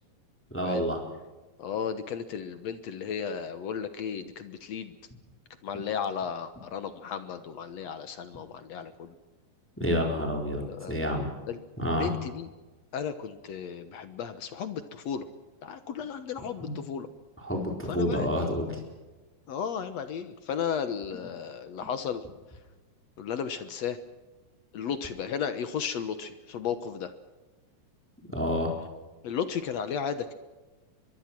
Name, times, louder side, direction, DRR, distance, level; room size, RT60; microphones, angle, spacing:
voice 1, 0.5-1.0 9.8-11.3 11.8-12.1 16.6-16.7 17.4-18.8 28.3-28.7, equal, 5° left, 1 dB, 3.9 m, -29 dB
voice 2, 1.6-4.9 5.6-9.1 10.7-11.0 11.5-11.6 11.9-12.5 12.9-15.3 15.6-17.1 17.9-18.6 19.5-22.2 23.2-24.0 24.7-27.1 29.2-30.3, left 7 dB, 65° left, 11 dB, 2.0 m, -34 dB
24.0 x 22.5 x 6.1 m, 1.2 s
omnidirectional pair, 3.9 m